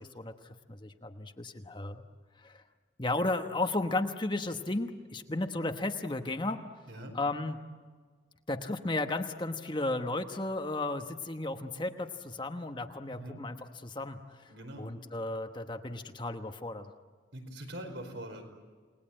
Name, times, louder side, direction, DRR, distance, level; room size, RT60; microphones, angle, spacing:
voice 1, 0.0-2.0 2.4-2.6 3.0-6.6 7.1-7.6 8.5-14.5 14.8-16.9, left 2 dB, 25° left, 6 dB, 1.1 m, -34 dB
voice 2, 6.9-7.2 13.1-13.4 14.5-14.9 17.3-18.4, right 1 dB, 70° right, 4 dB, 5.0 m, -43 dB
29.5 x 20.0 x 8.8 m, 1.5 s
head